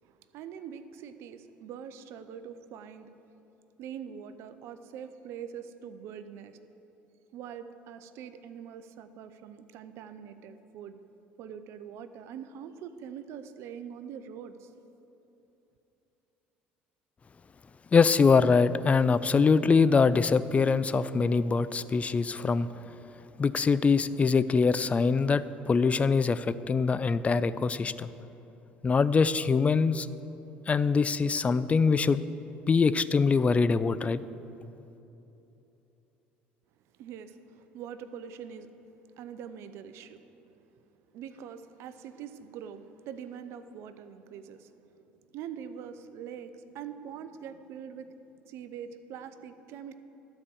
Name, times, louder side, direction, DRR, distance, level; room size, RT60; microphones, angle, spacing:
voice 1, 0.0-3.1 3.8-6.6 7.3-11.0 11.4-14.7 36.9-40.2 41.1-50.0, right 8 dB, 65° right, 11 dB, 0.6 m, -44 dB
voice 2, 17.9-22.7 23.4-28.1 28.8-30.1 30.7-32.2 32.7-34.2, left 5 dB, 30° left, 15 dB, 0.4 m, -23 dB
12.0 x 4.9 x 7.0 m, 3.0 s
hypercardioid pair, 70°, 5 cm